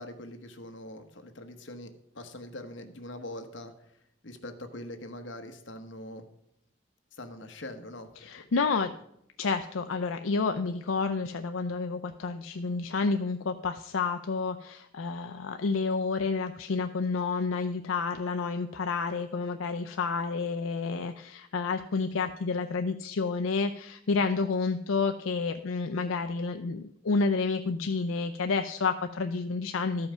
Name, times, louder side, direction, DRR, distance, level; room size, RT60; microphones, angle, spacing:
voice 1, 0.0-6.2 7.1-8.3, left 1 dB, 65° left, 6 dB, 1.1 m, -43 dB
voice 2, 8.2-8.9 9.4-30.1, left 4 dB, 85° left, 7 dB, 0.5 m, -30 dB
13.0 x 5.7 x 5.5 m, 0.76 s
head